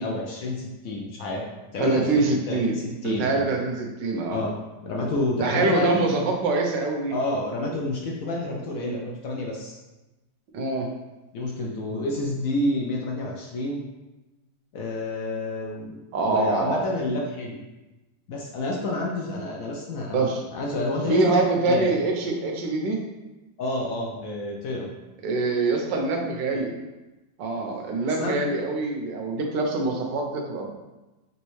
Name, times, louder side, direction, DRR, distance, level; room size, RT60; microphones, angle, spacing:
voice 1, 0.0-1.5 1.7-3.4 4.3-4.6 4.8-6.0 7.1-9.8 11.3-13.8 14.7-16.0 16.3-17.6 18.3-20.3 20.5-21.4 21.7-21.9 23.6-24.9 28.2-28.4, left 2 dB, 65° left, -2 dB, 0.9 m, -29 dB
voice 2, 1.8-2.8 3.0-4.4 5.4-7.2 10.5-10.9 16.1-16.8 20.1-20.4 21.1-23.0 25.2-26.7 27.4-30.7, right 3 dB, 90° right, 2 dB, 1.4 m, -24 dB
5.3 x 3.1 x 3.1 m, 1.1 s
omnidirectional pair, 1.9 m